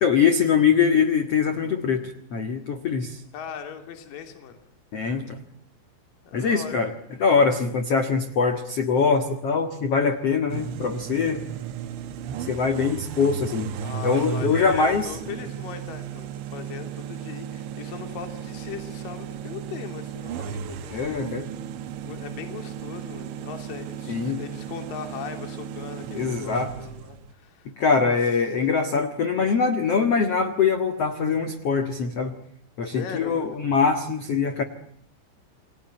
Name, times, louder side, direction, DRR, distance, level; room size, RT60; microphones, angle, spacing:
voice 1, 0.0-3.2 4.9-5.4 6.3-6.9 7.2-11.4 12.5-13.7 14.0-15.1 20.9-21.5 24.1-24.4 26.1-26.7 27.8-32.3 32.8-34.6, left 5 dB, 80° left, 7 dB, 1.3 m, -23 dB
voice 2, 3.3-4.6 6.3-6.8 13.8-21.0 21.3-21.4 22.0-27.7 28.0-28.2 32.8-33.6, left 7 dB, 50° left, 6 dB, 4.2 m, -39 dB
sound 1, 10.5-27.3, right 8 dB, 75° right, 3.4 m, -35 dB
29.0 x 22.5 x 9.0 m, 0.66 s
omnidirectional pair, 5.7 m